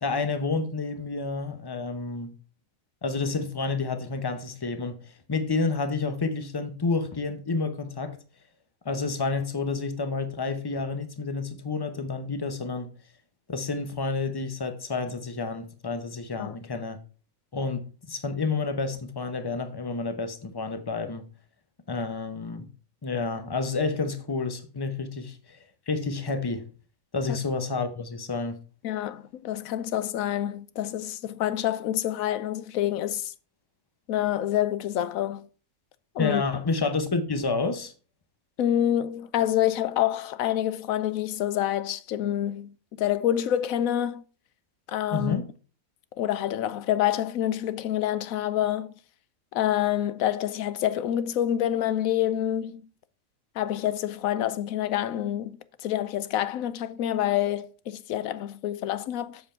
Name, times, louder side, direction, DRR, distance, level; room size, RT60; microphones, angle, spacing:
voice 1, 0.0-2.3 3.0-5.0 5.3-8.2 8.8-12.9 13.5-17.0 17.5-21.2 21.9-22.7 23.0-25.6 25.9-26.7 27.1-28.6 36.2-37.9 45.1-45.5, left 4 dB, 20° left, 0.7 m, -29 dB
voice 2, 28.8-33.3 34.1-35.5 36.1-36.4 38.6-44.2 44.9-45.4 46.2-48.9 49.5-52.8 53.6-59.4, left 11 dB, 85° left, 1.1 m, -27 dB
7.5 x 6.9 x 4.4 m
omnidirectional pair, 1.4 m